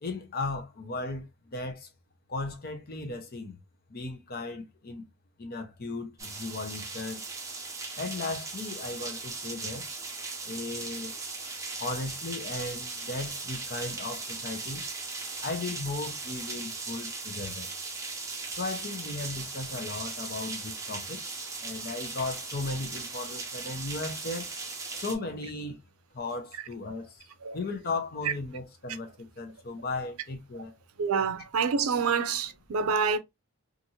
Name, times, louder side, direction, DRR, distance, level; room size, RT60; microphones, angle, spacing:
voice 1, 0.0-1.9 2.3-3.6 3.9-5.0 5.4-7.2 8.0-9.9 10.5-11.2 11.8-14.8 15.4-17.7 18.6-24.5 24.9-25.8 26.1-27.3 27.5-30.8, left 3 dB, 45° left, 0.7 m, -36 dB
sound 1, 6.2-25.1, right 3 dB, 15° right, 0.6 m, -38 dB
voice 2, 31.0-33.2, right 5 dB, 75° right, 0.5 m, -27 dB
2.8 x 2.5 x 2.7 m
head